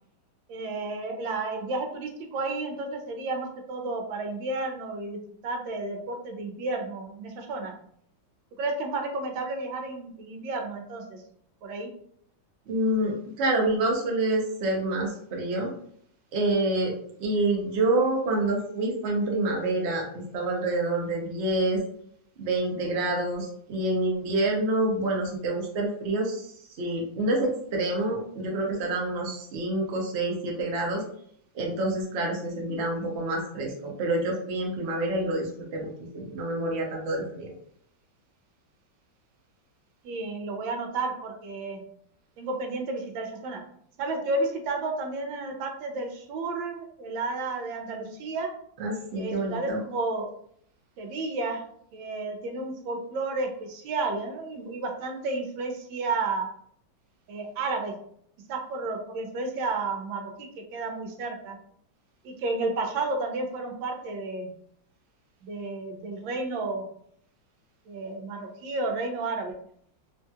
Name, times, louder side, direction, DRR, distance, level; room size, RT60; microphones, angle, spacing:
voice 1, 0.5-7.7 8.6-11.2 11.6-11.9 40.0-41.8 42.4-43.6 44.0-48.5 49.2-50.3 51.0-51.6 51.9-56.5 57.3-57.9 58.5-61.6 62.2-64.5 65.4-66.8 67.9-69.6, right 3 dB, 85° right, 3 dB, 1.3 m, -32 dB
voice 2, 12.7-15.7 16.3-16.9 17.2-21.8 22.4-31.0 31.5-37.5 48.8-49.8, right 2 dB, 65° right, -1 dB, 0.6 m, -27 dB
3.2 x 2.7 x 2.3 m, 0.67 s
omnidirectional pair, 2.0 m